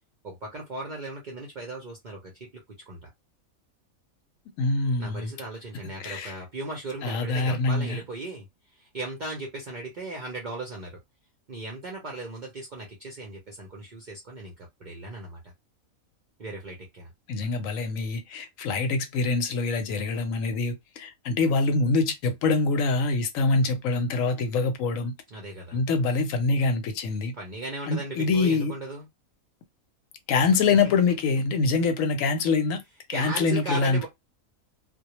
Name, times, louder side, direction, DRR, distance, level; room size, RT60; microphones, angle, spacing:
voice 1, 0.2-3.1 5.0-11.0 11.5-15.5 16.4-17.1 25.3-25.8 27.3-29.1 30.4-30.5 30.8-30.9 33.1-34.1, right 2 dB, 55° right, 0.5 m, -37 dB
voice 2, 4.6-5.3 6.0-6.3 7.0-8.0 17.3-25.1 25.7-27.3 27.9-28.7 30.3-32.8 33.1-34.1, left 4 dB, 75° left, 0.9 m, -25 dB
2.2 x 2.1 x 2.9 m
omnidirectional pair, 1.5 m